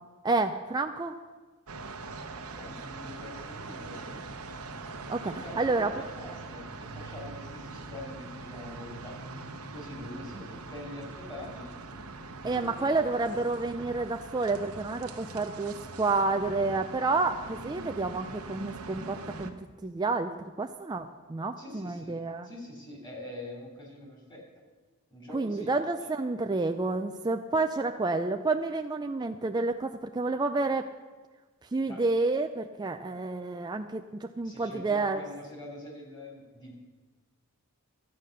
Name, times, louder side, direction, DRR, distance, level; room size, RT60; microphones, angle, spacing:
voice 1, 0.2-1.1 5.1-5.9 12.4-20.3 20.6-22.5 25.3-30.9 31.7-35.2, right 3 dB, 20° right, 6 dB, 0.4 m, -29 dB
sound 1, 1.7-19.5, right 3 dB, 70° right, 1.0 m, -42 dB
voice 2, 2.5-4.2 5.2-9.2 9.7-11.7 12.4-13.1 21.6-22.2 22.4-24.4 25.1-25.7 31.9-32.0 34.4-36.7, left 1 dB, 20° left, -1 dB, 3.2 m, -44 dB
13.0 x 9.5 x 6.6 m, 1.3 s
head